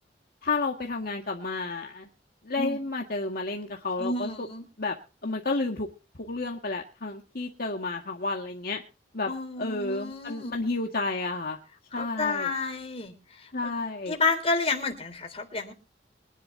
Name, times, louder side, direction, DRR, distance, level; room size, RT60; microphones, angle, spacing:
voice 1, 0.4-2.1 2.4-4.5 4.8-4.9 5.2-5.9 6.2-8.8 9.1-9.3 9.6-11.6 11.9-12.5 13.5-14.2, left 3 dB, 55° left, 1 dB, 1.9 m, -31 dB
voice 2, 4.0-4.6 9.3-10.5 11.9-13.5 14.1-15.7, left 3 dB, 35° left, 4 dB, 3.6 m, -30 dB
24.5 x 11.0 x 2.7 m, 0.34 s
head